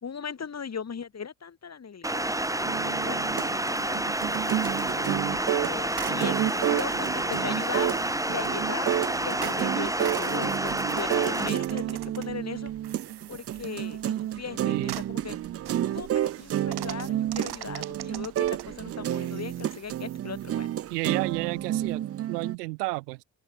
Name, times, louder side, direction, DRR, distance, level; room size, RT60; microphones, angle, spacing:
voice 1, 0.0-4.1 4.4-4.6 4.9-12.7 13.3-15.4 15.8-20.7, left 6 dB, 35° left, 2.5 m, -39 dB
sound 1, 2.0-11.5, right 1 dB, 5° right, 1.8 m, -29 dB
sound 2, 2.6-22.6, right 12 dB, 30° right, 0.5 m, -30 dB
sound 3, 3.8-22.0, right 11 dB, 55° right, 2.8 m, -45 dB
voice 2, 14.6-15.0 20.9-23.2, right 24 dB, 75° right, 2.7 m, -32 dB
open air
figure-of-eight pair, 45°, 47 cm